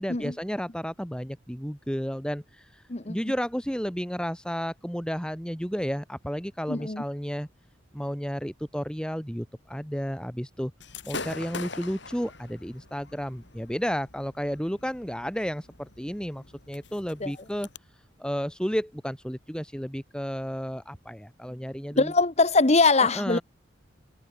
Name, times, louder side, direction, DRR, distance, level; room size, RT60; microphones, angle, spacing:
voice 1, 0.0-7.5 7.9-10.7 11.0-17.7 18.2-22.1 23.0-23.4, equal, 5° left, 6.0 m, -32 dB
voice 2, 6.7-7.0 17.2-17.3 22.0-23.4, left 3 dB, 35° left, 1.1 m, -22 dB
Gunshot gunfire / Fireworks, 10.8-17.8, left 4 dB, 65° left, 5.0 m, -43 dB
head